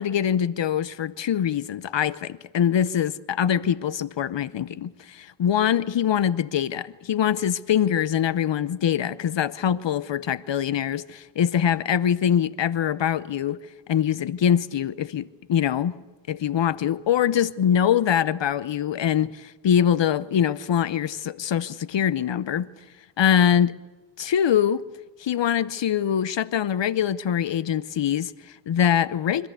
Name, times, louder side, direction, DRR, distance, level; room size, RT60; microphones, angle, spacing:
voice 1, 0.0-13.6 13.9-15.9 16.3-22.7 23.2-23.8 24.2-24.8 25.2-29.5, left 9 dB, 70° left, 0.7 m, -23 dB
25.5 x 14.0 x 8.2 m
cardioid pair, 65°, 45 cm